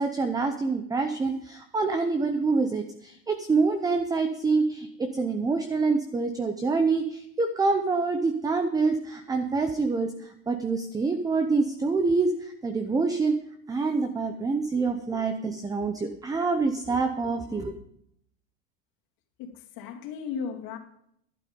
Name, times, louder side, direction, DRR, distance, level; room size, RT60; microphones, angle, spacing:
voice 1, 0.0-13.3 13.7-17.7, right 4 dB, 10° right, 7 dB, 0.6 m, -26 dB
voice 2, 19.4-20.8, left 6 dB, 55° left, 2 dB, 2.4 m, -35 dB
11.5 x 11.5 x 5.2 m, 0.72 s
supercardioid pair, 140°, 42 cm